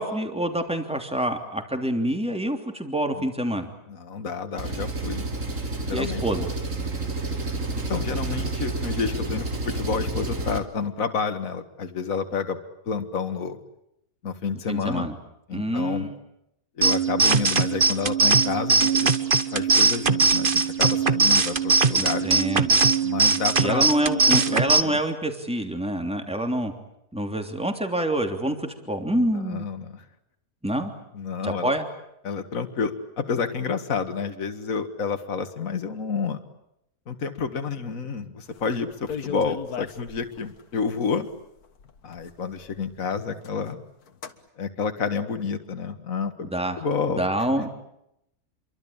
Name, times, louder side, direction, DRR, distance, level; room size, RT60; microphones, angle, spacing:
voice 1, 0.0-3.7 5.9-6.5 14.7-15.1 15.5-16.1 22.0-22.8 23.6-26.7 27.1-29.7 30.6-30.9 31.4-31.8 46.5-46.8 47.1-47.7, right 1 dB, 5° right, 5 dB, 3.1 m, -26 dB
voice 2, 3.9-5.2 5.8-6.2 7.9-12.6 12.9-13.6 14.2-15.1 15.5-16.1 16.8-19.2 19.5-22.3 23.0-23.9 24.5-24.6 24.8-25.0 29.2-30.0 31.1-31.7 32.2-36.4 37.1-41.3 42.0-43.8 44.6-46.5 46.8-47.3, left 5 dB, 60° left, 7 dB, 2.2 m, -29 dB
Engine, 4.6-10.6, right 2 dB, 55° right, 3.1 m, -30 dB
sound 1, 16.8-24.8, right 4 dB, 35° right, 1.4 m, -20 dB
sound 2, 38.5-38.6 38.8-40.6 41.3-41.4 41.6-42.9 43.3-43.7 44.1-44.4, left 7 dB, 85° left, 2.0 m, -37 dB
28.0 x 23.5 x 8.8 m, 0.81 s
omnidirectional pair, 1.6 m